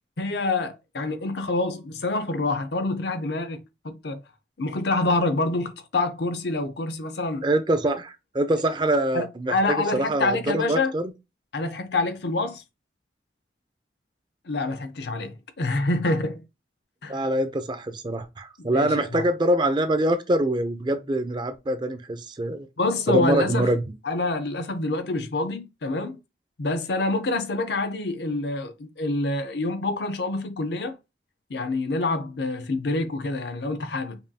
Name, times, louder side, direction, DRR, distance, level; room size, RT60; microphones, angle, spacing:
voice 1, 0.2-3.6 3.8-4.2 4.6-7.4 9.1-10.9 11.5-12.6 14.5-16.4 17.0-17.2 18.6-19.2 22.8-23.7 24.0-26.2 26.6-30.9 31.5-34.2, left 2 dB, 70° left, 0.6 m, -27 dB
voice 2, 7.4-9.6 9.9-11.1 17.1-22.7 23.1-23.8, right 1 dB, 25° right, 0.4 m, -24 dB
5.3 x 2.3 x 2.7 m
head